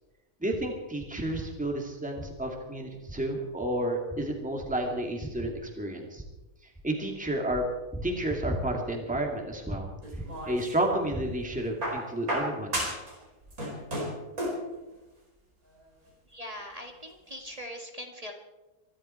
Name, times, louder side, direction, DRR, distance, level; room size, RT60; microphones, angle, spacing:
voice 1, 0.4-6.2 6.8-7.6 7.9-9.9 10.2-12.7, right 1 dB, 5° right, 1 dB, 2.4 m, -31 dB
sound 1, 10.0-11.0 11.8-13.1 13.4-14.7 15.8-15.9, right 1 dB, 60° right, 5.3 m, -33 dB
voice 2, 16.3-18.3, equal, 25° right, 3 dB, 1.7 m, -41 dB
25.0 x 12.5 x 4.5 m, 1.1 s
omnidirectional pair, 1.7 m